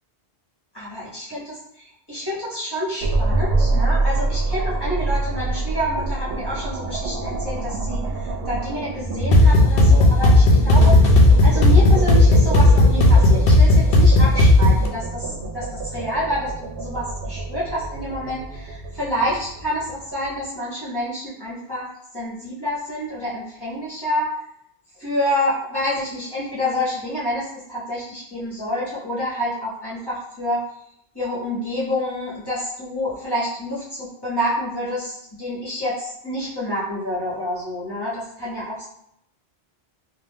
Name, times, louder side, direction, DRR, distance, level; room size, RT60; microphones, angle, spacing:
voice 1, 0.7-21.9 22.1-24.3 25.0-30.6 31.1-38.8, left 1 dB, 25° left, -9 dB, 1.0 m, -28 dB
sound 1, 3.0-20.2, right 3 dB, 80° right, 0.8 m, -27 dB
sound 2, 9.3-14.9, left 2 dB, 70° left, 0.7 m, -13 dB
2.4 x 2.2 x 3.5 m, 0.75 s
omnidirectional pair, 1.1 m